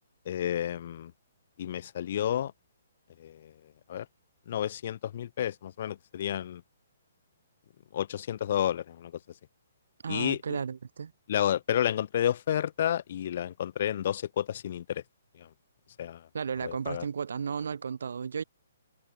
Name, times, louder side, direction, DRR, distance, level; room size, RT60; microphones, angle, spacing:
voice 1, 0.3-1.1 1.6-2.5 3.2-3.5 3.9-4.1 4.5-6.6 7.9-9.1 10.1-10.6 11.3-15.0 15.4-15.5 16.0-16.3 16.6-17.1, left 10 dB, 55° left, 3.6 m, -31 dB
voice 2, 10.0-11.1 16.3-18.4, right 6 dB, 70° right, 6.9 m, -34 dB
hypercardioid pair, 140°, 0 cm